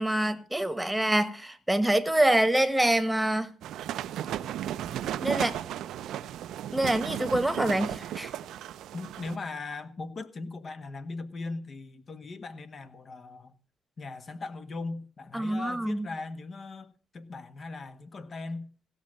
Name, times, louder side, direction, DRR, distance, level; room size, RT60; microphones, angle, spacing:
voice 1, 0.0-3.5 5.2-5.6 6.7-8.3 15.3-16.1, right 1 dB, 5° right, 1.5 m, -26 dB
sound 1, 3.6-9.4, right 11 dB, 80° right, 0.6 m, -35 dB
voice 2, 8.9-13.5 14.0-18.7, left 3 dB, 40° left, 1.5 m, -39 dB
16.5 x 6.6 x 7.5 m
cardioid pair, 90°, 0 cm